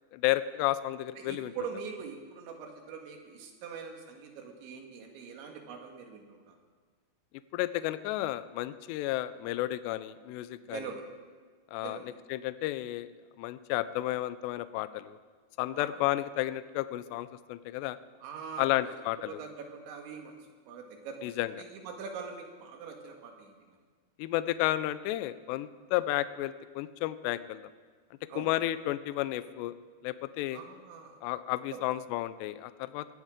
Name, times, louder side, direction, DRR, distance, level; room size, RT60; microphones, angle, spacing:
voice 1, 0.1-1.5 7.5-10.8 11.7-12.0 12.3-13.1 13.4-15.2 15.6-18.0 18.6-19.4 21.2-21.5 24.2-27.6 28.4-29.7 30.0-30.6 31.2-33.1, left 15 dB, 85° left, 14 dB, 2.4 m, -32 dB
voice 2, 1.2-6.6 10.7-11.0 11.8-12.1 15.7-15.9 18.2-18.9 19.3-20.4 20.7-23.6 28.3-28.5 30.5-31.2 31.7-31.8, right 6 dB, 75° right, 3 dB, 3.8 m, -43 dB
20.0 x 15.5 x 3.7 m, 1.5 s
omnidirectional pair, 5.4 m